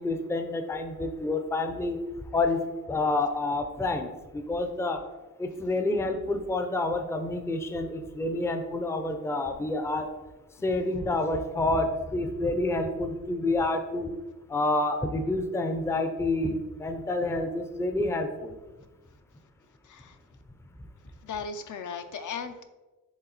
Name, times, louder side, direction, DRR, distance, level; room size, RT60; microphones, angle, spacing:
voice 1, 0.0-2.0 2.3-5.0 5.4-10.1 10.6-14.1 14.5-18.5, left 2 dB, 10° left, 7 dB, 0.5 m, -28 dB
voice 2, 19.8-20.2 21.2-22.6, left 5 dB, 60° left, 8 dB, 0.6 m, -37 dB
7.1 x 3.5 x 3.9 m, 1.1 s
wide cardioid pair, 125°, 34 cm